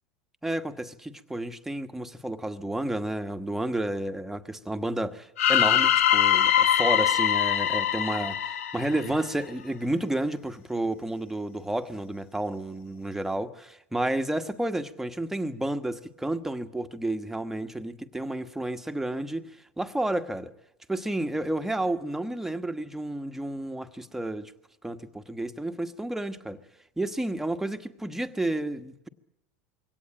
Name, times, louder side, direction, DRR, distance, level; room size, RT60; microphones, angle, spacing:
voice 1, 0.4-20.5 20.9-24.5 24.8-26.6 27.0-29.1, right 1 dB, 5° right, 1.4 m, -31 dB
sound 1, 5.4-9.4, left 10 dB, 90° left, 1.2 m, -23 dB
23.0 x 17.5 x 8.8 m
supercardioid pair, 110°, 7 cm